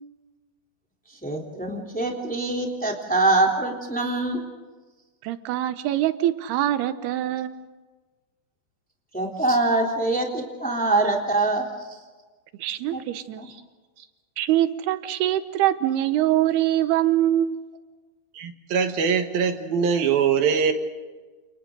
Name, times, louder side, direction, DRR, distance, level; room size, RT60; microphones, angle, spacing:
voice 1, 1.2-4.4 9.1-11.6 12.9-13.0 13.4-13.5, right 2 dB, ahead, 0 dB, 2.9 m, -24 dB
voice 2, 5.2-7.6 12.6-13.4 14.4-17.7, right 13 dB, 90° right, 11 dB, 3.0 m, -23 dB
voice 3, 18.3-20.7, right 6 dB, 70° right, 6 dB, 3.3 m, -22 dB
29.5 x 29.0 x 3.9 m, 1.3 s
omnidirectional pair, 4.5 m